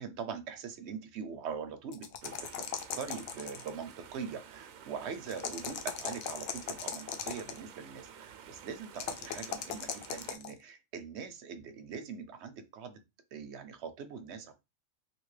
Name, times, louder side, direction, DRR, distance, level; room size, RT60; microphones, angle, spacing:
voice 1, 0.0-13.0 13.3-14.5, right 6 dB, 65° right, 9 dB, 0.8 m, -42 dB
sound 1, 1.9-3.8 5.3-7.6 9.0-10.5, left 8 dB, 65° left, 0.7 m, -38 dB
sound 2, 2.2-10.4, right 8 dB, 90° right, 1.0 m, -52 dB
3.3 x 2.8 x 3.1 m, 0.23 s
omnidirectional pair, 1.3 m